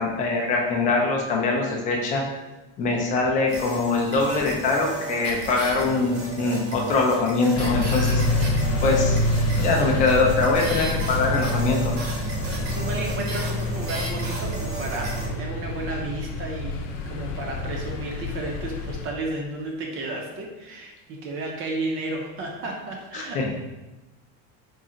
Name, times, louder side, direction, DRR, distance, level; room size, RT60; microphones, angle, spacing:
voice 1, 0.0-2.2 2.8-8.2 8.8-9.2 9.6-12.0 23.1-23.5, left 3 dB, 20° left, -1 dB, 0.3 m, -23 dB
sound 1, 3.5-15.3, right 3 dB, 80° right, 1.2 m, -35 dB
sound 2, 7.5-19.1, left 1 dB, 90° left, 0.7 m, -27 dB
voice 2, 8.6-9.5 9.8-10.3 10.7-10.9 12.6-23.4, right 2 dB, 35° right, 0 dB, 0.5 m, -33 dB
3.8 x 2.1 x 3.7 m, 1.0 s
cardioid pair, 165°, 37 cm